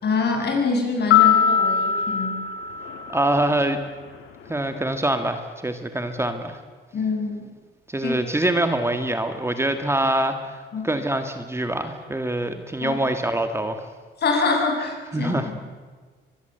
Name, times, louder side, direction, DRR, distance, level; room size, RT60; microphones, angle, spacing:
voice 1, 0.0-2.4 6.9-7.3 8.0-8.2 10.7-10.9 12.8-13.0 14.2-15.4, left 4 dB, 55° left, 2 dB, 7.3 m, -24 dB
sound 1, 1.1-3.6, left 8 dB, 85° left, 2.1 m, -21 dB
voice 2, 3.1-3.8 4.5-6.6 7.9-13.9 15.1-15.6, right 1 dB, 15° right, 7 dB, 2.0 m, -24 dB
24.5 x 22.0 x 8.2 m, 1.4 s
cardioid pair, 90°, 20 cm